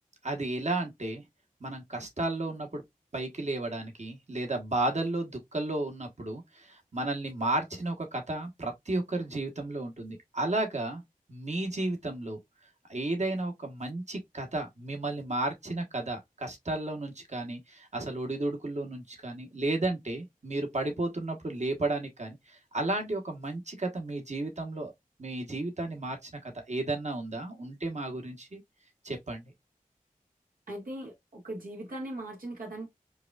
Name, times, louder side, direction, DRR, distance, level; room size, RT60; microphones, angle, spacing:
voice 1, 0.2-1.2 1.6-2.8 3.1-11.0 11.3-12.4 12.9-24.9 25.2-28.6 29.0-29.4, right 2 dB, 50° right, 1.3 m, -33 dB
voice 2, 30.7-32.9, right 1 dB, 75° right, 1.4 m, -39 dB
4.7 x 2.4 x 2.3 m
wide cardioid pair, 40°, 15 cm